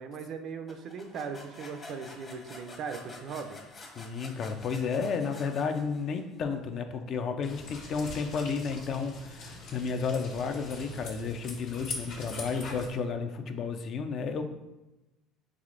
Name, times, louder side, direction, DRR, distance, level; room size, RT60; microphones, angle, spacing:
voice 1, 0.0-3.6, right 5 dB, 55° right, 7 dB, 0.4 m, -39 dB
sound 1, 0.7-6.3, left 2 dB, 30° left, 0.9 m, -49 dB
voice 2, 4.0-14.4, left 5 dB, 50° left, 7 dB, 0.4 m, -32 dB
sound 2, 7.4-12.9, left 2 dB, 80° left, 1.3 m, -42 dB
4.8 x 3.2 x 2.5 m, 1.0 s
supercardioid pair, 80°, 0 cm